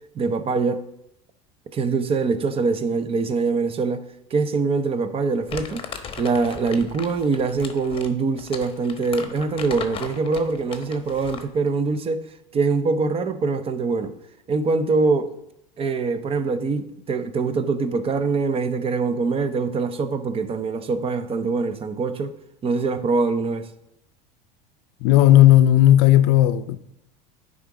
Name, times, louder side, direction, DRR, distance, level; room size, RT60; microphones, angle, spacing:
voice 1, 0.1-0.9 1.7-4.0 4.3-5.8 6.2-12.3 12.5-14.1 14.5-15.3 15.8-22.3 22.6-23.7, right 4 dB, 30° right, 0.7 m, -23 dB
Crumpling crinkling, 5.5-11.6, left 6 dB, 30° left, 1.0 m, -37 dB
voice 2, 25.0-26.8, left 13 dB, 65° left, 0.5 m, -14 dB
9.7 x 3.7 x 4.9 m
supercardioid pair, 105°, 19 cm